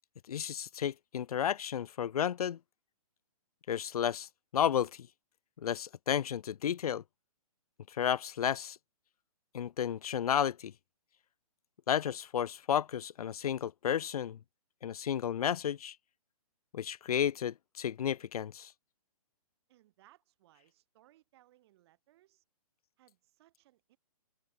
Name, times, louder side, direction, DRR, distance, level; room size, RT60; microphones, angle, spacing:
voice 1, 0.3-2.6 3.7-5.1 5.6-7.0 7.9-8.8 9.5-10.7 11.9-14.4 14.8-16.0 16.7-18.7, left 9 dB, 80° left, 0.5 m, -32 dB
voice 2, 19.7-22.4 23.0-24.0, right 15 dB, 45° right, 3.6 m, -65 dB
hypercardioid pair, 140°, 19 cm